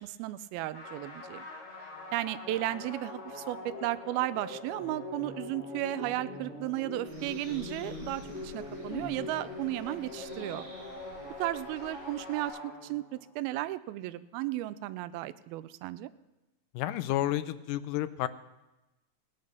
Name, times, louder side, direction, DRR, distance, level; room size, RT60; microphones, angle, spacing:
voice 1, 0.0-1.5 2.1-10.6 11.4-16.1, right 16 dB, 90° right, 16 dB, 2.5 m, -34 dB
sound 1, 0.7-13.3, left 2 dB, 25° left, 5.4 m, -42 dB
Bird, 7.1-12.5, right 1 dB, 65° right, 6.2 m, -51 dB
voice 2, 16.7-18.3, left 13 dB, 80° left, 13 dB, 2.0 m, -31 dB
17.0 x 10.5 x 6.6 m, 1.0 s
omnidirectional pair, 4.2 m